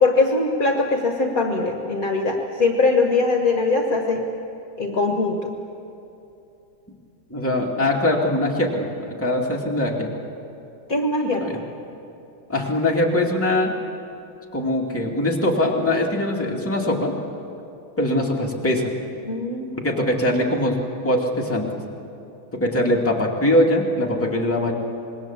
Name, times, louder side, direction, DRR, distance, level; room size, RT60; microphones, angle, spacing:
voice 1, 0.0-4.2 4.8-5.5 7.8-7.9 10.9-11.6 19.2-19.7, left 3 dB, 45° left, 2 dB, 1.9 m, -21 dB
voice 2, 7.3-8.9 9.2-10.1 11.2-11.6 12.5-13.7 14.5-17.1 18.0-18.9 19.7-20.8 21.0-21.7 22.6-24.7, left 1 dB, 5° left, -2 dB, 2.3 m, -22 dB
26.0 x 21.0 x 7.4 m, 2.8 s
omnidirectional pair, 2.2 m